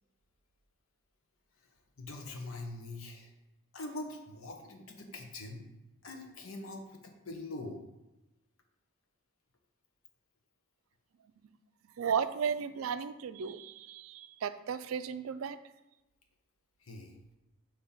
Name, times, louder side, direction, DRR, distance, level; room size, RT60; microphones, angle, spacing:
voice 1, 2.0-3.3 3.7-5.7 6.0-7.8 16.8-17.2, left 2 dB, 90° left, 3 dB, 1.0 m, -43 dB
voice 2, 12.0-15.6, right 7 dB, 80° right, 12 dB, 0.4 m, -34 dB
6.8 x 2.9 x 5.6 m, 1.0 s
head